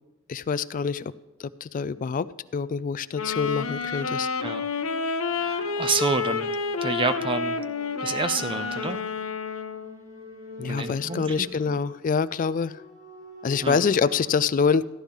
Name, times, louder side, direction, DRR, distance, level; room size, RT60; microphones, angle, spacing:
voice 1, 0.3-1.1 1.4-2.3 2.5-4.3 10.6-12.8 13.4-14.9, left 5 dB, 40° left, 16 dB, 0.3 m, -25 dB
Wind instrument woodwind instrument, 3.1-10.0, left 5 dB, 90° left, 0.8 m, -29 dB
sound 1, 3.7-14.3, left 2 dB, 80° right, 2.7 m, -46 dB
voice 2, 5.4-6.5 6.8-7.6 8.0-9.0 10.6-11.8 13.6-13.8, right 4 dB, 25° right, 10 dB, 0.5 m, -29 dB
14.5 x 11.5 x 3.6 m, 1.0 s
head